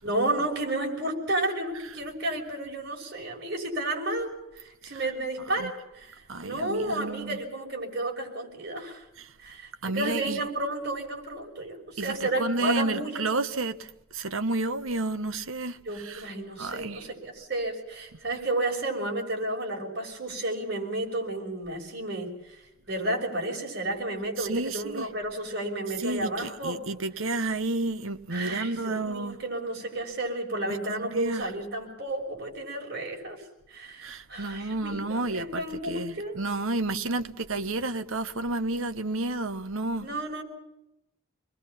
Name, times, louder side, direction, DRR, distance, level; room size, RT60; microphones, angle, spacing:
voice 1, 0.0-9.0 9.4-13.4 15.8-26.9 28.3-36.4 40.0-40.4, right 1 dB, 50° right, 6.0 m, -32 dB
voice 2, 6.3-7.4 9.8-10.4 12.0-16.2 16.6-17.0 24.4-25.1 26.0-29.4 31.0-31.4 34.0-40.1, right 2 dB, 80° right, 1.2 m, -31 dB
27.5 x 21.0 x 5.7 m
head